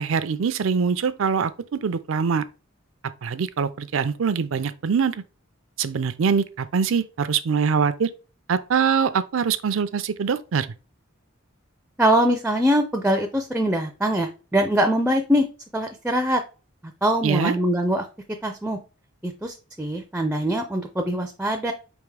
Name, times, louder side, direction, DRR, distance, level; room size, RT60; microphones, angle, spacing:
voice 1, 0.0-2.4 3.2-5.2 5.8-8.1 8.5-10.7 17.2-17.5, right 6 dB, 70° right, 0.4 m, -23 dB
voice 2, 12.0-15.5 15.7-16.4 17.0-18.1 18.4-18.8 19.2-21.7, equal, 5° right, 0.4 m, -23 dB
4.6 x 3.5 x 3.3 m
head